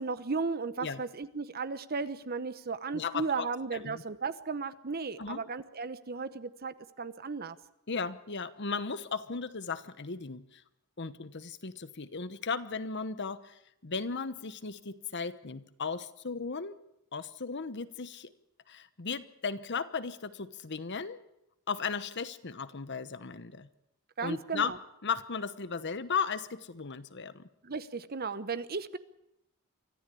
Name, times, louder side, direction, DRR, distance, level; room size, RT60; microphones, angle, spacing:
voice 1, 0.0-7.6 24.2-24.8 27.6-29.0, right 4 dB, 45° right, 13 dB, 1.0 m, -35 dB
voice 2, 2.9-3.5 3.7-4.0 5.2-5.4 7.9-10.6 11.0-16.7 17.1-18.3 18.7-21.2 21.7-23.7 24.2-24.7 25.0-27.5, left 5 dB, 55° left, 13 dB, 1.0 m, -36 dB
24.5 x 14.5 x 8.4 m, 0.83 s
head